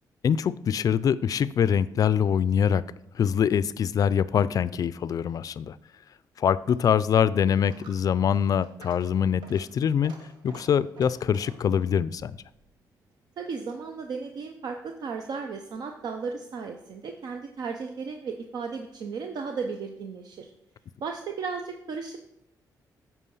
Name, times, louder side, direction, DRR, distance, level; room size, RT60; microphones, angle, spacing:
voice 1, 0.2-2.8 3.1-5.8 6.4-10.1 10.4-12.3, left 8 dB, 55° left, 17 dB, 0.3 m, -24 dB
Coin (dropping), 6.6-14.0, right 3 dB, 85° right, 1.3 m, -53 dB
voice 2, 13.4-20.5 21.0-22.2, right 5 dB, 65° right, 4 dB, 0.7 m, -35 dB
8.4 x 4.8 x 5.5 m, 0.79 s
cardioid pair, 90°, 7 cm